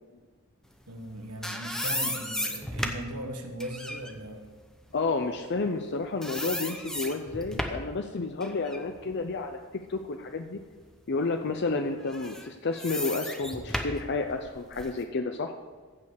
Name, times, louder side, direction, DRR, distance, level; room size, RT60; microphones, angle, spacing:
voice 1, 0.9-4.5, right 1 dB, 90° right, 4 dB, 1.5 m, -38 dB
sound 1, 1.0-5.9 6.2-7.9 8.4-10.4 10.8-11.0 12.0-15.0, left 1 dB, ahead, 0.8 m, -35 dB
voice 2, 4.9-10.6 11.1-15.5, left 3 dB, 50° left, 6 dB, 0.6 m, -31 dB
15.0 x 5.4 x 6.5 m, 1.4 s
head